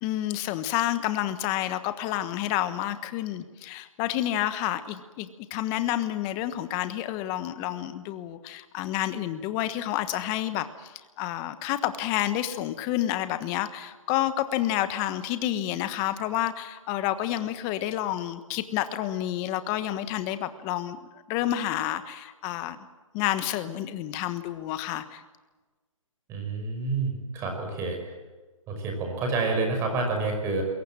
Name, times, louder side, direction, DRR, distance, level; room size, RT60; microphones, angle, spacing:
voice 1, 0.0-21.0 21.3-22.8 23.1-25.2, left 13 dB, 20° left, 11 dB, 1.3 m, -29 dB
voice 2, 26.3-28.0 28.7-30.6, right 3 dB, 15° right, 3 dB, 5.4 m, -28 dB
27.5 x 22.0 x 7.6 m, 1.3 s
hypercardioid pair, 155°, 17 cm